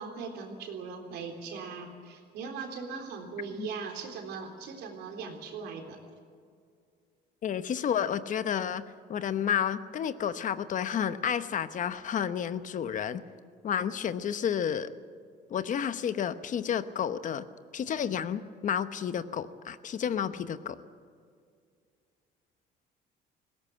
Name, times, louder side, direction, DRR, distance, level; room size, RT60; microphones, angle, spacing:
voice 1, 0.0-6.0, right 5 dB, 85° right, 3 dB, 3.6 m, -39 dB
voice 2, 7.4-8.8 9.1-13.2 13.6-14.9 15.5-17.4 17.7-20.8, left 8 dB, 50° left, 13 dB, 1.0 m, -31 dB
19.5 x 17.0 x 8.5 m, 2.2 s
cardioid pair, 110°, 17 cm